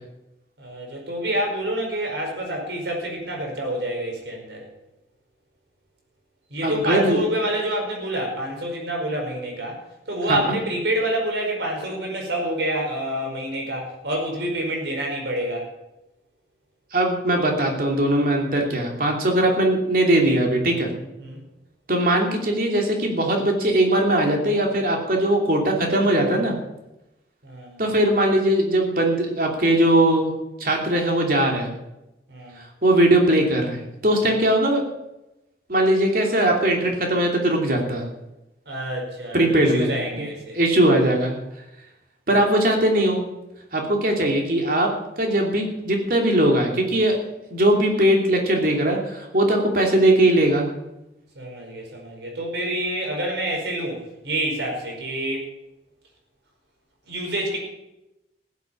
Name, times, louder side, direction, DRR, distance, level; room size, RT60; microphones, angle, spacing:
voice 1, 0.6-4.7 6.5-15.7 21.0-21.4 27.4-27.8 32.3-32.6 38.7-40.6 51.4-55.5 57.1-57.6, right 1 dB, 80° right, 0 dB, 5.2 m, -27 dB
voice 2, 6.6-7.2 10.3-10.5 16.9-20.9 21.9-26.6 27.8-30.3 30.6-31.7 32.8-34.8 35.7-38.1 39.3-39.9 40.2-40.3 40.5-41.4 42.3-43.2 43.7-44.9 45.2-47.2 47.5-50.6, right 1 dB, 50° right, 1 dB, 2.9 m, -20 dB
15.0 x 8.3 x 7.1 m, 0.94 s
head